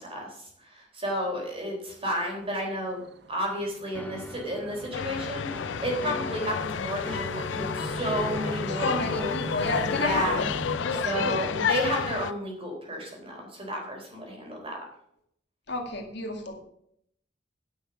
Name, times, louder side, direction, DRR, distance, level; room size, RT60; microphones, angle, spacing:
voice 1, 0.0-3.0 3.3-9.3 9.9-10.4 11.1-14.8, equal, 30° right, 0 dB, 3.8 m, -32 dB
sound 1, 2.4-10.8, right 3 dB, 65° right, 0.9 m, -42 dB
sound 2, 3.9-12.2, left 1 dB, 10° left, 0.5 m, -40 dB
sound 3, 4.9-12.3, left 7 dB, 85° left, 0.4 m, -31 dB
voice 2, 8.7-10.5 10.8-11.7 15.7-16.6, left 2 dB, 65° left, 2 dB, 2.2 m, -31 dB
10.0 x 6.3 x 7.0 m, 0.70 s
head